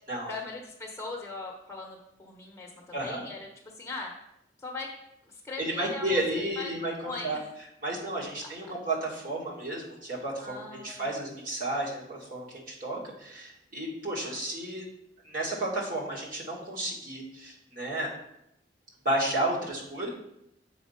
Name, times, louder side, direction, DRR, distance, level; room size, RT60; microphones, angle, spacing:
voice 1, 0.3-3.4 3.6-4.1 4.6-4.9 5.2-6.7 7.0-7.4 8.4-8.5 10.4-11.2 14.2-14.4, left 3 dB, 15° left, -2 dB, 1.0 m, -40 dB
voice 2, 2.9-3.2 5.6-7.4 7.8-14.9 15.2-18.1 19.0-20.1, right 1 dB, 50° right, -4 dB, 2.2 m, -32 dB
7.6 x 4.1 x 5.8 m, 0.81 s
head